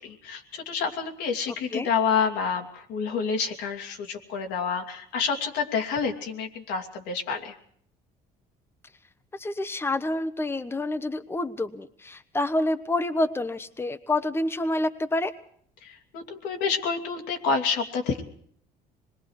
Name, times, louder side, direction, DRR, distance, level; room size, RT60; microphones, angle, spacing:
voice 1, 0.0-7.5 16.1-18.2, left 5 dB, 85° left, 3 dB, 2.7 m, -28 dB
voice 2, 9.3-15.3, left 2 dB, 15° left, 10 dB, 1.0 m, -28 dB
25.5 x 21.0 x 4.8 m, 0.62 s
cardioid pair, 110°, 17 cm